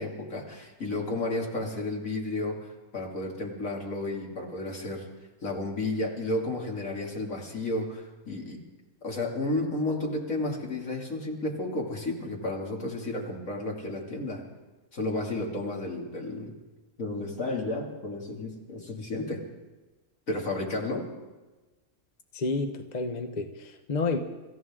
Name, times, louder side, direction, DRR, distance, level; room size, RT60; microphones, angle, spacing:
voice 1, 0.0-5.1 5.4-8.6 9.0-14.4 14.9-16.5 17.0-19.4 20.3-21.0, left 2 dB, 60° left, -1 dB, 3.0 m, -32 dB
voice 2, 22.3-24.2, left 3 dB, 35° left, 6 dB, 0.9 m, -30 dB
26.0 x 14.5 x 3.7 m, 1.2 s
omnidirectional pair, 1.5 m